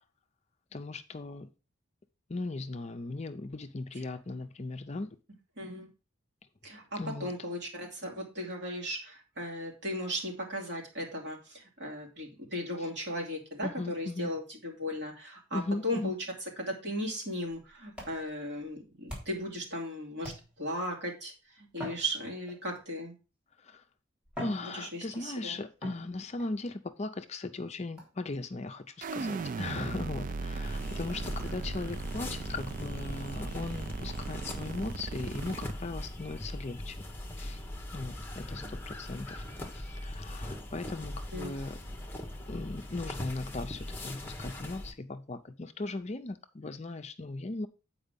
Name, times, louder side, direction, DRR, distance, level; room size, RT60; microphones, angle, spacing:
voice 1, 0.7-1.5 2.3-5.2 7.0-7.3 12.8-12.9 13.6-14.3 15.5-16.1 23.6-23.8 24.4-37.0 37.4-37.6 37.9-39.4 39.7-41.8 42.5-47.7, left 2 dB, 30° left, 0.5 m, -38 dB
voice 2, 5.6-5.9 6.6-16.1 16.6-21.3 21.6-23.1 24.7-25.5 41.3-41.5, equal, 55° right, 2.8 m, -36 dB
sound 1, 17.5-19.6 20.2-20.8 21.7-22.8 23.7-23.8 24.2-25.3 25.8-26.5 28.0-28.3 29.4-29.6 30.2-30.3 30.7-30.8 31.1-31.3 31.6-31.7 32.1-32.2 32.6-32.7 33.1-33.2 34.1-34.2, equal, 5° right, 3.8 m, -46 dB
sound 2, 29.0-35.7, right 4 dB, 40° right, 0.3 m, -37 dB
sound 3, 30.6-44.9, left 1 dB, 10° left, 1.0 m, -40 dB
8.5 x 4.8 x 5.2 m
head